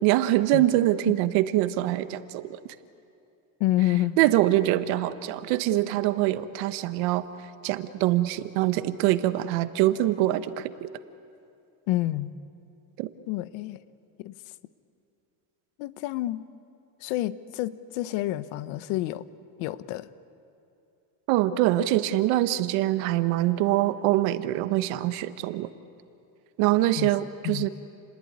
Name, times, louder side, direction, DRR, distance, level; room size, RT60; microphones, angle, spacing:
voice 1, 0.0-2.6 4.2-7.2 7.6-10.9 13.0-13.1 21.3-25.7 26.6-27.7, right 15 dB, 85° right, 11 dB, 1.3 m, -24 dB
voice 2, 3.6-4.2 11.9-12.3 13.3-13.8 14.2-14.4 15.8-16.4 17.0-19.3 19.6-20.1 27.0-27.1 27.4-27.7, left 15 dB, 85° left, 14 dB, 1.1 m, -28 dB
29.5 x 20.5 x 9.5 m, 2.6 s
cardioid pair, 140°, 46 cm